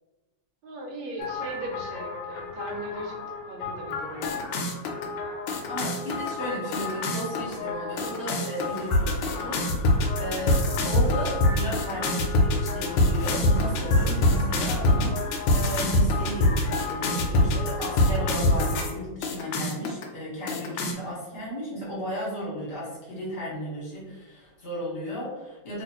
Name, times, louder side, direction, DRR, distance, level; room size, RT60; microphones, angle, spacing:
voice 1, 0.6-3.2 3.5-4.4, right 1 dB, 75° right, 1 dB, 1.2 m, -37 dB
sound 1, 1.2-18.9 19.2-20.0 20.5-20.9, left 1 dB, 80° left, 1.5 m, -26 dB
voice 2, 5.7-25.8, equal, 35° left, -8 dB, 1.2 m, -34 dB
sound 2, 8.9-15.1, left 4 dB, 5° right, 0.7 m, -49 dB
3.0 x 3.0 x 2.8 m, 1.1 s
omnidirectional pair, 2.4 m